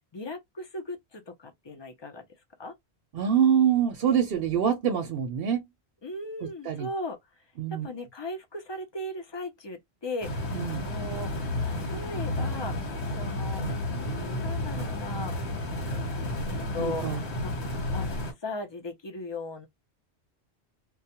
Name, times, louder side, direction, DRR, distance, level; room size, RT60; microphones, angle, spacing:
voice 1, 0.1-2.2 2.6-2.7 6.0-7.2 7.7-10.3 10.8-12.7 13.1-15.4 16.5-17.5 17.9-18.1 18.4-19.7, left 2 dB, 35° left, 0.5 m, -37 dB
voice 2, 3.1-5.6 6.6-6.9 7.6-7.9 10.5-10.8 16.8-17.2, right 8 dB, 65° right, 0.8 m, -25 dB
sound 1, 10.2-18.3, left 1 dB, 75° left, 1.2 m, -32 dB
2.3 x 2.1 x 2.8 m
omnidirectional pair, 1.1 m